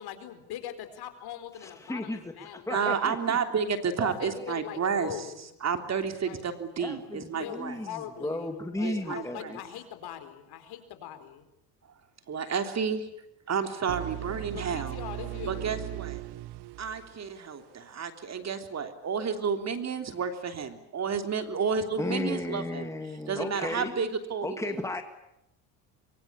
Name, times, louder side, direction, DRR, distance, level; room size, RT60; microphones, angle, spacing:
voice 1, 0.0-3.0 4.0-5.5 6.2-6.4 7.1-11.5 14.5-15.8, left 10 dB, 60° left, 9 dB, 4.4 m, -42 dB
voice 2, 1.8-2.3 2.7-3.4 4.0-4.6 6.8-9.6 22.0-23.9 24.4-25.0, left 2 dB, 5° left, 6 dB, 2.2 m, -34 dB
voice 3, 2.7-5.2 5.6-7.8 8.8-9.5 12.3-13.1 13.5-15.0 15.5-16.2 16.8-22.9 23.3-24.9, right 6 dB, 40° right, 7 dB, 3.3 m, -31 dB
sound 1, 13.9-17.8, right 18 dB, 65° right, 1.2 m, -38 dB
24.5 x 24.0 x 8.8 m, 0.81 s
supercardioid pair, 95°, 43 cm